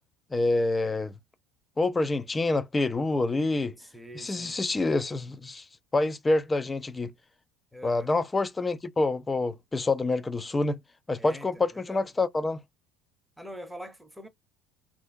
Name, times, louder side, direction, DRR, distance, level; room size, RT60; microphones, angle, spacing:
voice 1, 0.3-1.1 1.8-3.7 4.2-5.6 5.9-7.1 7.8-10.8 11.1-12.6, left 2 dB, 20° left, 0.5 m, -27 dB
voice 2, 3.8-4.5 7.7-8.1 11.2-12.1 13.4-14.3, equal, 5° right, 0.8 m, -44 dB
3.4 x 2.5 x 2.5 m
figure-of-eight pair, 65°, 0 cm